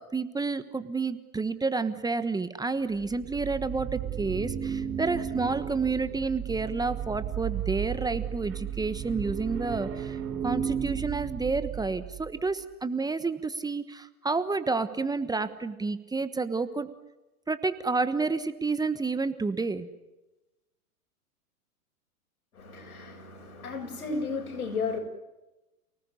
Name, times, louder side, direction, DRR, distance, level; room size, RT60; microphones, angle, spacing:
voice 1, 0.0-10.2 10.4-16.9 17.5-19.9, right 4 dB, 10° right, 11 dB, 1.2 m, -30 dB
sound 1, 3.0-12.3, right 9 dB, 30° right, 3.5 m, -34 dB
voice 2, 22.5-25.0, left 4 dB, 80° left, 3 dB, 7.8 m, -34 dB
29.5 x 19.0 x 9.9 m, 1.0 s
hypercardioid pair, 115°, 44 cm